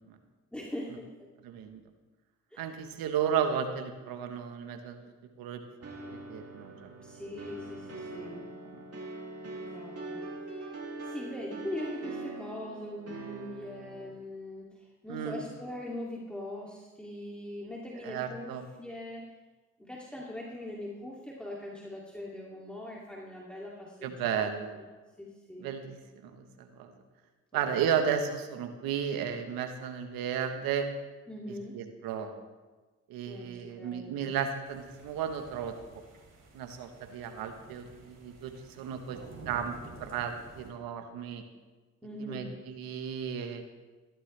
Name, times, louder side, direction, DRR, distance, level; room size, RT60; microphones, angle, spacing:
voice 1, 0.5-1.3 2.5-2.9 7.0-8.5 9.6-10.7 11.0-19.3 19.8-24.9 25.2-25.7 27.5-28.0 31.3-31.8 33.3-34.2 42.0-42.6, left 1 dB, 5° left, -4 dB, 2.6 m, -42 dB
voice 2, 1.4-1.8 2.6-5.0 5.4-5.6 6.0-6.9 8.2-8.4 8.7-8.8 15.1-15.4 18.0-18.6 24.0-24.8 25.6-26.0 26.2-26.9 27.5-30.9 31.7-32.3 33.1-35.7 36.5-39.2 39.5-39.7 40.0-41.4 42.3-43.6, right 8 dB, 85° right, 7 dB, 1.3 m, -34 dB
sound 1, 5.8-14.1, right 2 dB, 45° right, 2.9 m, -42 dB
sound 2, 34.6-40.7, right 3 dB, 65° right, 3.6 m, -52 dB
15.5 x 12.5 x 3.3 m, 1.3 s
supercardioid pair, 50°, 34 cm